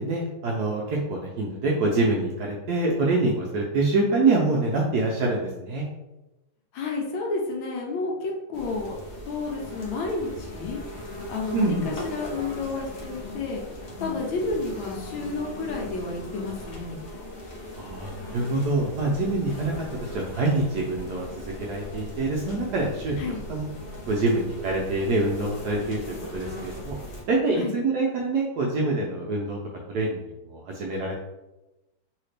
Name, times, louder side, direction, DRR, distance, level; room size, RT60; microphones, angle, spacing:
voice 1, 0.0-5.9 11.5-11.9 17.8-19.7 20.0-23.7 24.1-27.0 27.3-29.6 29.9-31.1, right 2 dB, 75° right, -2 dB, 0.9 m, -25 dB
voice 2, 6.7-8.9 9.3-10.8 11.2-17.0 23.2-23.4 27.6-27.8, left 3 dB, 85° left, 0 dB, 1.5 m, -31 dB
sound 1, 8.5-27.2, left 1 dB, 60° left, 0.6 m, -39 dB
3.2 x 2.8 x 3.2 m, 1.0 s
omnidirectional pair, 2.2 m